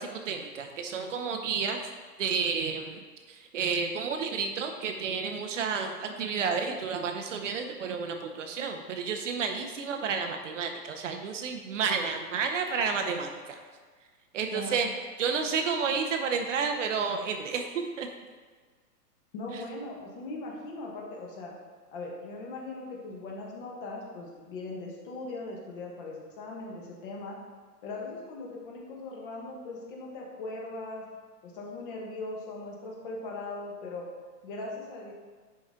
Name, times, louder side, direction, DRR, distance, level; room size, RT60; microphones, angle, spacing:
voice 1, 0.0-1.8 2.2-13.6 14.3-14.9 15.2-18.1 19.5-19.6, right 5 dB, 50° right, 5 dB, 0.8 m, -31 dB
voice 2, 19.3-21.5 21.9-27.4 27.8-31.0 31.4-34.0 34.4-35.1, left 2 dB, 35° left, -2 dB, 1.5 m, -39 dB
10.0 x 4.2 x 3.7 m, 1.5 s
hypercardioid pair, 155°, 48 cm